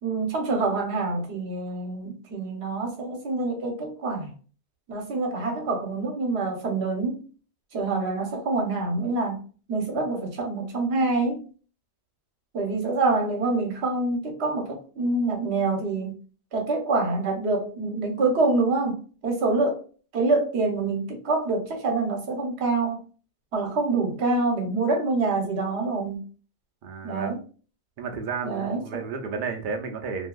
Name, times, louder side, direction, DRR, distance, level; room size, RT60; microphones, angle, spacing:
voice 1, 0.0-4.3 4.9-7.2 7.7-9.4 9.7-11.5 12.5-16.1 16.5-19.8 20.1-23.0 23.5-26.3 27.0-27.4 28.4-29.0, right 3 dB, 75° right, 1.1 m, -26 dB
voice 2, 26.8-27.4 28.0-30.3, right 5 dB, 55° right, 0.7 m, -32 dB
2.7 x 2.7 x 2.3 m
omnidirectional pair, 1.1 m